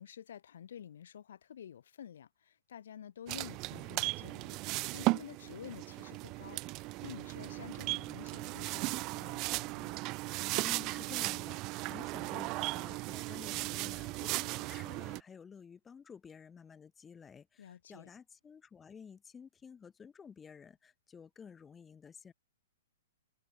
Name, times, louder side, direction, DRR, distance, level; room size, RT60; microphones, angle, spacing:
voice 1, 0.0-4.6 4.9-6.6 7.0-10.0 17.6-18.1, left 9 dB, 75° left, 5.5 m, -50 dB
sound 1, 3.3-15.2, right 23 dB, 30° right, 0.4 m, -37 dB
voice 2, 10.6-22.3, left 6 dB, 10° left, 3.8 m, -52 dB
hypercardioid pair, 155°, 0 cm